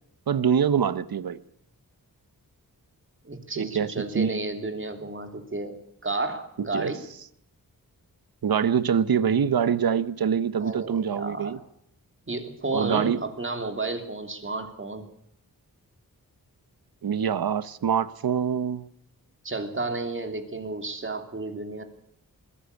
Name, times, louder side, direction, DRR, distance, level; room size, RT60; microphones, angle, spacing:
voice 1, 0.3-1.4 3.6-4.4 6.6-6.9 8.4-11.6 12.7-13.2 17.0-18.9, right 7 dB, 80° right, 1.1 m, -25 dB
voice 2, 3.2-5.8 6.0-7.0 10.6-11.6 12.3-15.1 19.4-21.8, right 2 dB, 35° right, 3.1 m, -32 dB
21.5 x 16.0 x 8.4 m
wide cardioid pair, 120°, 35 cm